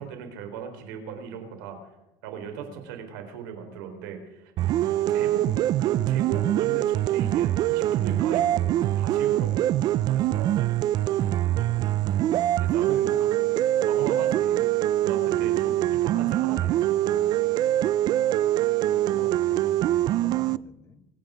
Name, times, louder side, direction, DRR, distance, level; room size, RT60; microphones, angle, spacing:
voice 1, 0.0-1.8 2.2-4.5 5.1-5.5 5.8-9.8 10.1-10.6 12.6-13.4 13.8-14.7 15.0-17.3, right 6 dB, 85° right, 5 dB, 4.1 m, -37 dB
sound 1, 4.6-20.6, right 13 dB, 45° right, 0.4 m, -24 dB
voice 2, 11.7-12.0 18.9-21.1, left 5 dB, 25° left, 10 dB, 1.3 m, -49 dB
24.5 x 9.5 x 5.1 m, 0.95 s
cardioid pair, 140°, 10 cm